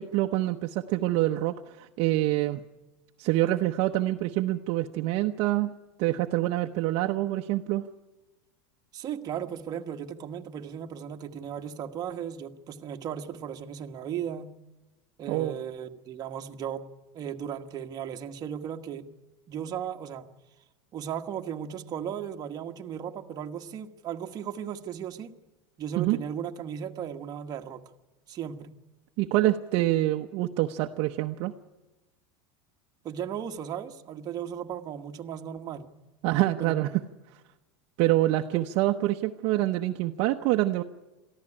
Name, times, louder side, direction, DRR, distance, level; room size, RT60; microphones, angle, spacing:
voice 1, 0.0-2.6 3.2-5.7 6.0-7.8 15.3-15.5 26.0-26.2 29.2-31.5 36.2-36.9 38.0-40.8, right 16 dB, 40° right, 4 dB, 0.8 m, -26 dB
voice 2, 8.9-14.5 15.2-16.8 17.1-19.1 19.5-20.3 20.9-25.3 25.8-27.8 28.3-28.7 33.0-35.9 36.6-36.8, right 9 dB, 25° right, 5 dB, 1.3 m, -36 dB
23.0 x 14.5 x 9.8 m, 1.1 s
supercardioid pair, 165°, 15 cm